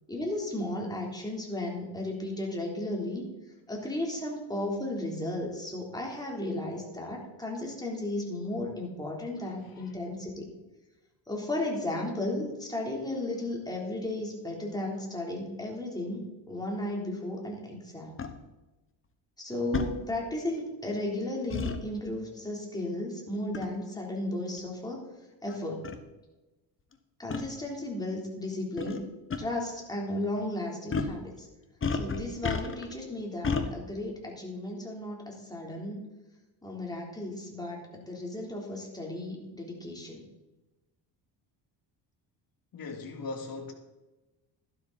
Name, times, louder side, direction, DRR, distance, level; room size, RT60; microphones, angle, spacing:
voice 1, 0.1-3.3 3.7-10.5 11.3-18.2 19.4-25.0 25.4-25.9 27.2-29.0 29.4-31.5 31.9-36.1 36.6-40.2, left 1 dB, 10° left, 3.6 m, -34 dB
voice 2, 9.4-9.9 42.7-43.7, left 3 dB, 50° left, 2.7 m, -40 dB
sound 1, 18.2-18.3 19.7-19.9 21.5-21.8 23.5-23.8 24.6-24.7 25.5-25.6 25.8-26.0 27.3-27.4 28.8-29.0 29.3-29.4 30.9-31.2 31.8-32.9 33.4-33.7, left 5 dB, 30° left, 1.2 m, -31 dB
13.0 x 11.5 x 4.2 m
cardioid pair, 125°, 45 cm